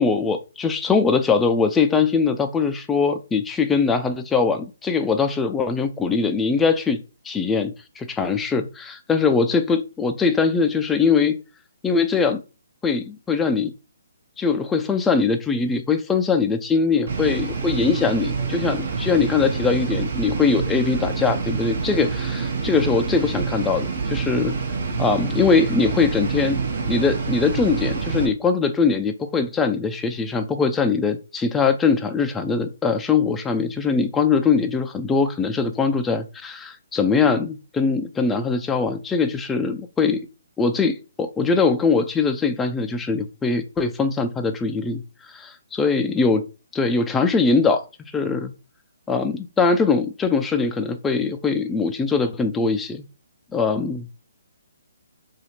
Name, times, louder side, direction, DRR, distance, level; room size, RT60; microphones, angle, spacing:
voice 1, 0.0-7.0 7.3-11.4 11.8-12.4 12.8-13.7 14.4-24.5 25.0-26.6 26.9-40.2 40.6-45.0 45.3-46.5 46.7-47.8 48.1-48.5 49.1-53.0 53.5-54.1, left 4 dB, 10° left, 0.4 m, -21 dB
sound 1, 17.1-28.3, right 5 dB, 55° right, 0.9 m, -27 dB
2.8 x 2.4 x 4.1 m
figure-of-eight pair, 140°, 0 cm